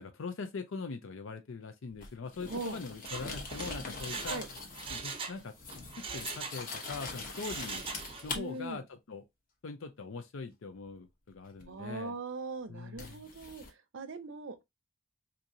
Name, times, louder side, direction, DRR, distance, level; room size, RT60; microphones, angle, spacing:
voice 1, 0.0-4.5 4.9-5.5 6.0-7.9 8.2-9.2 9.6-12.1 12.7-13.2, left 4 dB, 75° left, 0.5 m, -42 dB
sound 1, 2.0-5.1 5.3-8.4 11.6-11.7 13.0-13.7, left 3 dB, 45° left, 1.0 m, -43 dB
Mechanisms, 2.9-5.4 5.7-6.9 7.3-8.4 8.7-8.8, right 5 dB, 30° right, 0.5 m, -41 dB
voice 2, 8.3-8.8 11.7-13.6 13.9-14.6, right 3 dB, 65° right, 0.6 m, -40 dB
4.4 x 2.7 x 2.6 m
head